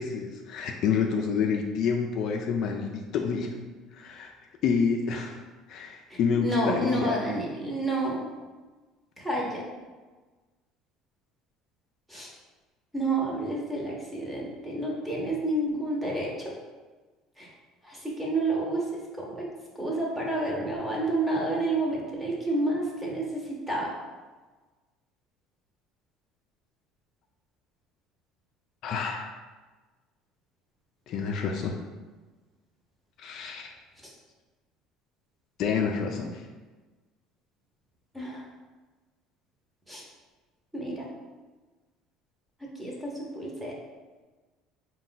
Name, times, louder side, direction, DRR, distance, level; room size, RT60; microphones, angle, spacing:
voice 1, 0.0-3.6 3.9-4.3 4.6-5.4 5.7-7.2 28.8-29.3 31.1-31.8 33.2-33.7 35.6-36.5, left 6 dB, 50° left, 2 dB, 0.3 m, -28 dB
voice 2, 6.1-8.3 9.2-9.7 12.1-12.3 12.9-16.5 17.4-17.5 17.8-19.5 19.7-23.9 34.0-34.1 38.1-38.5 39.9-40.0 40.7-41.1 42.6-43.8, right 1 dB, 5° right, -3 dB, 0.8 m, -30 dB
4.3 x 2.2 x 3.9 m, 1.3 s
cardioid pair, 145°, 0 cm